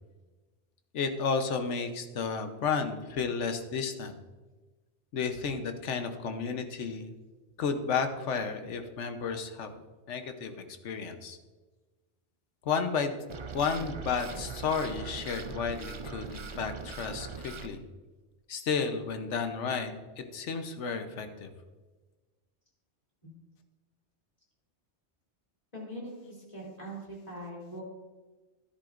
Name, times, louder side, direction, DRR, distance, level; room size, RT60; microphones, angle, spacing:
voice 1, 0.9-4.1 5.1-7.1 7.6-9.7 10.1-11.4 12.6-13.2 13.5-17.8 18.5-21.5, left 5 dB, 85° left, 7 dB, 1.2 m, -32 dB
sound 1, 13.3-17.7, right 4 dB, 40° right, 0.4 m, -41 dB
voice 2, 25.7-27.8, right 1 dB, 35° left, -4 dB, 3.1 m, -42 dB
12.5 x 10.5 x 2.5 m, 1.3 s
omnidirectional pair, 1.2 m